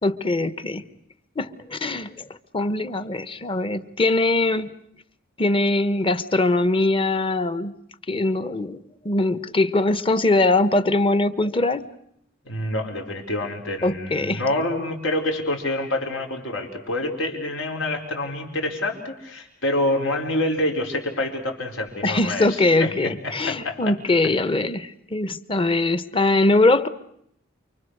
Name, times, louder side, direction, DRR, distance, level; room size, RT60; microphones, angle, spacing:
voice 1, 0.0-0.8 1.4-2.3 2.5-4.7 5.4-7.7 8.1-8.8 9.0-11.9 13.8-14.4 22.0-26.9, left 2 dB, 25° left, 14 dB, 0.9 m, -22 dB
voice 2, 12.4-23.9, left 1 dB, 85° left, 2 dB, 4.8 m, -27 dB
29.0 x 24.5 x 6.6 m, 0.72 s
head